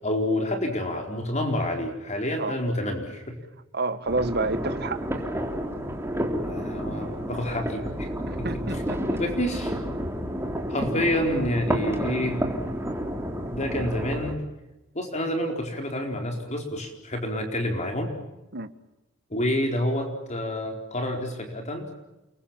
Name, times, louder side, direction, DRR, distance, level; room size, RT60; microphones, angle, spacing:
voice 1, 0.0-3.4 6.4-8.1 8.4-8.8 9.2-9.8 10.7-12.4 13.5-14.4 14.9-18.1 19.3-21.9, left 1 dB, 35° left, 4.5 m, -28 dB
voice 2, 3.7-5.1 8.3-9.2 10.9-11.0 18.5-18.7, right 3 dB, 50° right, 1.6 m, -29 dB
sound 1, 4.1-14.3, equal, 10° right, 3.3 m, -30 dB
29.5 x 23.0 x 7.4 m
head